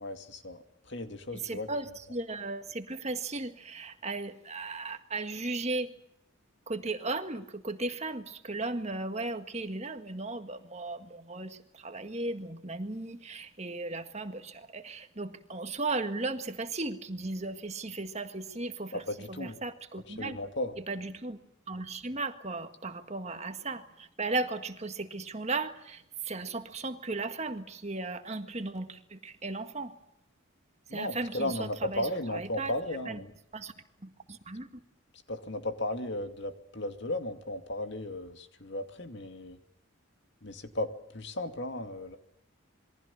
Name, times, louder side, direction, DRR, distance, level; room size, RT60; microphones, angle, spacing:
voice 1, 0.0-1.7 18.9-19.5 20.2-20.7 30.9-33.3 35.3-39.6 40.4-40.9 41.1-42.2, left 1 dB, 55° left, 7 dB, 2.5 m, -35 dB
voice 2, 1.3-5.9 6.7-20.4 20.8-21.4 21.7-30.0 30.9-32.7 33.1-33.2 33.5-33.7 34.0-34.8, right 3 dB, 30° right, 7 dB, 1.8 m, -36 dB
28.0 x 22.5 x 7.3 m, 0.73 s
head